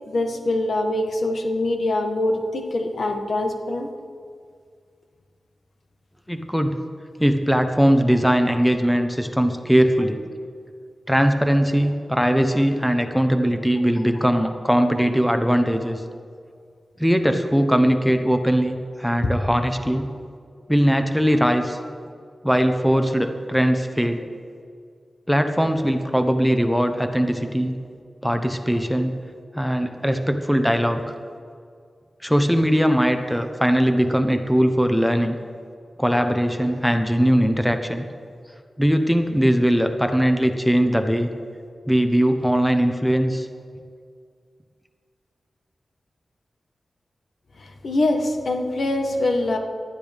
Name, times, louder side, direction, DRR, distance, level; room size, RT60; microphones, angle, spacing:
voice 1, 0.1-3.9 47.6-49.6, left 2 dB, 70° left, 4 dB, 1.4 m, -24 dB
voice 2, 6.3-6.7 7.2-10.2 11.1-16.0 17.0-20.1 20.7-21.8 22.4-24.2 25.3-27.8 28.2-29.1 29.5-31.1 32.2-35.4 36.0-38.0 38.8-41.3 41.9-43.5, equal, ahead, 6 dB, 1.0 m, -20 dB
19.0 x 12.0 x 3.6 m, 2.2 s
wide cardioid pair, 75°, 0 cm